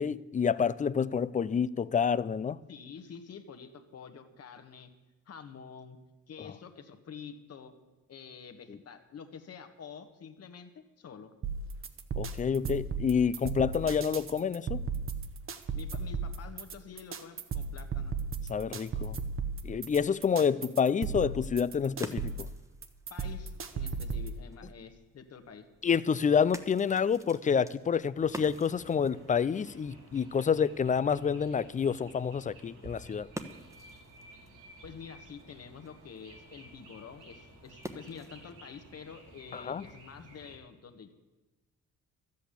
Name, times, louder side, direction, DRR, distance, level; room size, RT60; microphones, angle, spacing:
voice 1, 0.0-2.6 8.7-8.8 12.2-14.8 18.5-19.2 19.6-22.5 25.8-33.3 39.5-39.8, left 6 dB, 25° left, 18 dB, 0.4 m, -28 dB
voice 2, 2.7-4.9 5.3-6.0 6.3-7.7 8.1-11.3 15.7-18.1 23.1-25.6 34.8-41.1, left 6 dB, 55° left, 8 dB, 1.5 m, -48 dB
sound 1, 11.4-24.4, right 5 dB, 45° right, 1.1 m, -36 dB
sound 2, 21.4-38.6, right 1 dB, 10° right, 1.1 m, -50 dB
sound 3, 28.1-40.6, right 2 dB, 85° right, 3.4 m, -54 dB
12.5 x 8.4 x 8.4 m, 1.1 s
cardioid pair, 90°, 30 cm